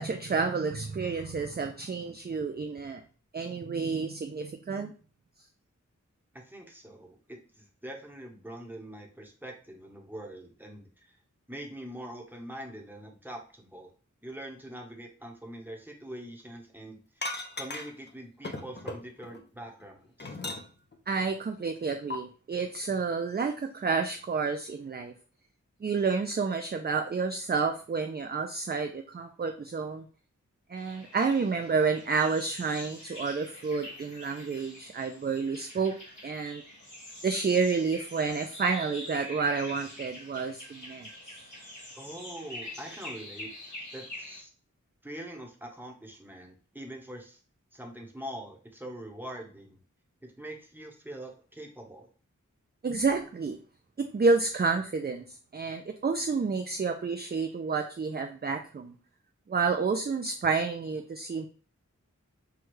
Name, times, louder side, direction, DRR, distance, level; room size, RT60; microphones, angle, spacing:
voice 1, 0.0-3.0 3.3-4.9 21.1-25.1 25.8-30.1 30.7-35.9 36.2-36.6 37.2-41.1 52.8-53.6 54.0-55.2 55.5-58.9 59.5-61.5, right 4 dB, 35° right, 6 dB, 0.4 m, -29 dB
voice 2, 6.3-11.2 11.5-13.9 14.2-17.2 17.6-20.4 42.0-43.5 43.9-44.5 45.0-47.4 47.7-49.8 50.2-52.1, right 1 dB, 5° right, 1 dB, 1.0 m, -43 dB
sound 1, 17.2-18.1 18.4-19.4 19.8-20.9 22.1-22.2, left 2 dB, 35° left, 0.6 m, -37 dB
sound 2, 30.7-44.4, left 1 dB, 70° left, 1.8 m, -45 dB
6.1 x 2.3 x 3.1 m, 0.38 s
wide cardioid pair, 60°, 31 cm